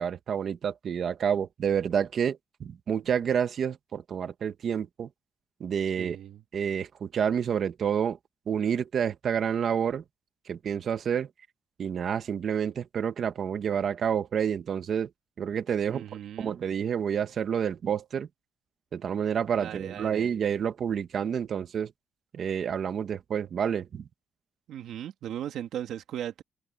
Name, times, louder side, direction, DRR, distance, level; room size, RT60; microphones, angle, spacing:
voice 1, 0.0-5.1 5.6-6.2 6.5-8.2 8.5-10.0 10.5-11.3 11.8-15.1 15.4-16.0 16.4-18.3 18.9-21.9 22.3-24.1, right 8 dB, 45° right, 1.5 m, -29 dB
voice 2, 6.0-6.4 15.9-16.6 19.6-20.3 24.7-26.4, right 10 dB, 75° right, 2.7 m, -37 dB
cardioid pair, 150°, 0 cm